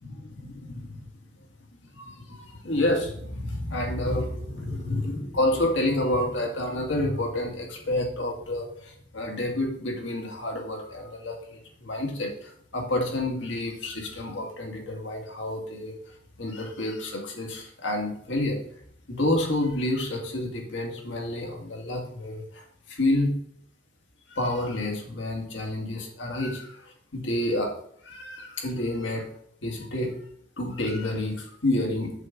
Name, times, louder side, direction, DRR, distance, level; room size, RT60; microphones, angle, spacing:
voice 1, 0.0-1.0 1.9-18.6 19.1-23.3 24.3-27.7 28.0-29.3 29.6-30.2 30.6-32.1, left 1 dB, 85° left, 1 dB, 1.9 m, -29 dB
8.1 x 7.1 x 3.9 m, 0.64 s
head